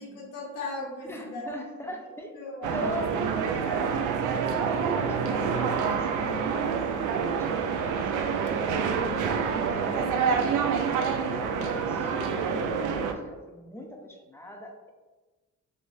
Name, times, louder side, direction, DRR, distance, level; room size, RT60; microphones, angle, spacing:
voice 1, 0.0-1.4 2.3-2.9, left 2 dB, 90° left, -4 dB, 1.2 m, -37 dB
voice 2, 1.1-2.4 2.7-3.9 4.5-8.4 8.9-10.7 11.2-14.9, equal, 10° left, 1 dB, 0.6 m, -40 dB
sound 1, 2.6-13.1, right 6 dB, 85° right, 0.5 m, -27 dB
5.1 x 2.0 x 2.6 m, 1.2 s
cardioid pair, 90°, 30 cm